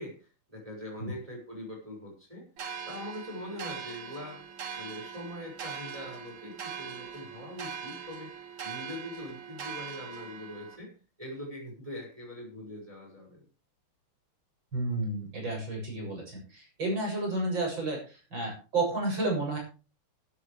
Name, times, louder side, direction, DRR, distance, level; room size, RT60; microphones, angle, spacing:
voice 1, 0.0-2.5 2.9-4.4 4.7-8.3 8.6-13.4, left 1 dB, 15° right, -1 dB, 6.2 m, -42 dB
sound 1, 2.6-10.8, right 7 dB, 90° right, 3.6 m, -41 dB
voice 2, 14.7-19.6, right 2 dB, 55° right, 0 dB, 8.5 m, -31 dB
17.0 x 12.5 x 3.4 m, 0.34 s
omnidirectional pair, 2.4 m